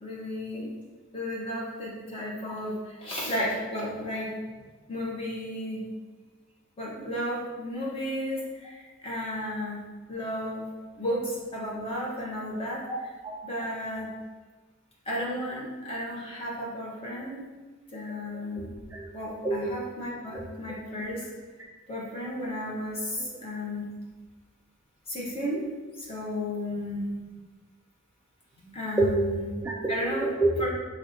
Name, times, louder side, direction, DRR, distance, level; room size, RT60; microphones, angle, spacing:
voice 1, 0.0-0.7 1.1-4.3 4.9-5.8 6.8-9.8 10.1-10.7 11.0-13.1 13.4-14.1 15.0-17.4 17.9-18.7 19.1-21.3 21.9-23.8 25.1-25.6 26.0-27.4 28.6-29.4 29.9-30.3 30.6-30.7, left 1 dB, 25° left, -6 dB, 1.2 m, -33 dB
voice 2, 18.6-19.0 19.4-19.8 20.3-20.4 23.2-23.3 29.0-30.7, right 2 dB, 10° right, -5 dB, 0.4 m, -28 dB
5.8 x 3.3 x 2.8 m, 1.3 s
head